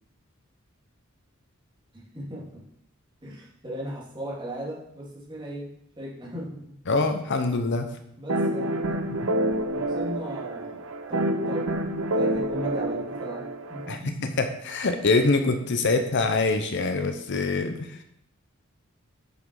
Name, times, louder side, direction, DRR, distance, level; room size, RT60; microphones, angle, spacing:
voice 1, 1.9-2.6 3.2-5.7 6.0-6.6 8.2-9.0 9.7-10.8 11.1-11.7 12.1-14.3 15.7-15.9, equal, 25° right, -5 dB, 2.6 m, -37 dB
voice 2, 6.9-7.9 9.2-9.3 13.9-18.0, left 3 dB, 60° left, 7 dB, 0.8 m, -25 dB
sound 1, 8.3-14.0, right 1 dB, 70° right, 0.8 m, -28 dB
8.4 x 6.2 x 4.8 m, 0.75 s
head